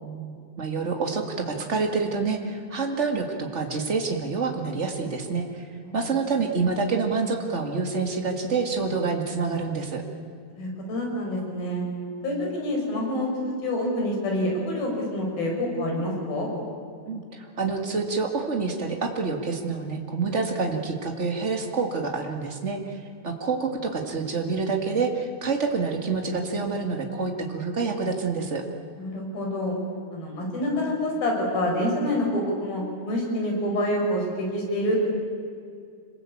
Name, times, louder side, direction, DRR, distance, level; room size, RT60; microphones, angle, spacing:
voice 1, 0.0-5.7 5.9-10.0 17.0-28.6, right 4 dB, 40° right, 3 dB, 0.9 m, -27 dB
voice 2, 10.6-11.8 12.2-16.5 29.0-29.8 30.1-35.0, left 1 dB, 60° left, 0 dB, 7.2 m, -27 dB
26.5 x 21.0 x 8.7 m, 2.3 s
omnidirectional pair, 4.9 m